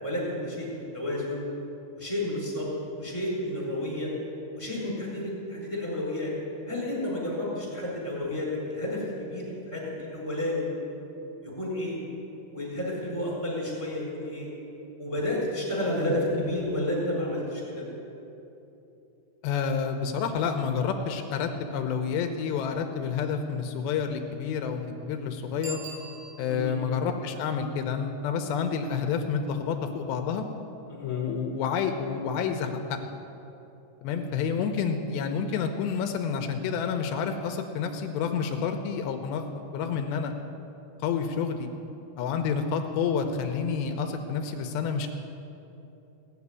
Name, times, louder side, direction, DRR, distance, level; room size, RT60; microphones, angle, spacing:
voice 1, 0.0-1.4 1.9-2.7 3.0-4.1 4.5-6.3 6.7-10.7 11.4-12.0 12.5-14.5 15.0-17.8 26.5-26.8 30.9-31.2, left 1 dB, 5° left, -6 dB, 3.6 m, -31 dB
voice 2, 19.4-25.8 26.4-30.5 31.0-33.0 34.0-39.4 39.7-40.3 41.0-41.7 42.2-45.1, left 6 dB, 80° left, 5 dB, 2.6 m, -29 dB
Bicycle bell, 25.6-26.8 32.2-32.3, right 2 dB, 75° right, 5.4 m, -42 dB
17.5 x 7.2 x 9.7 m, 3.0 s
omnidirectional pair, 5.5 m